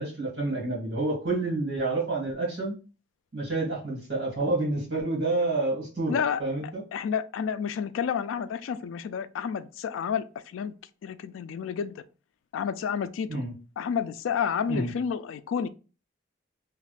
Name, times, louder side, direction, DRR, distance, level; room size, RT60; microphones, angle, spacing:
voice 1, 0.0-2.7 3.3-6.8 13.3-13.5 14.7-14.9, right 2 dB, 60° right, 1.9 m, -29 dB
voice 2, 6.1-10.7 11.0-12.0 12.5-13.4 13.8-15.7, left 7 dB, 85° left, 0.3 m, -30 dB
3.0 x 2.4 x 3.3 m
head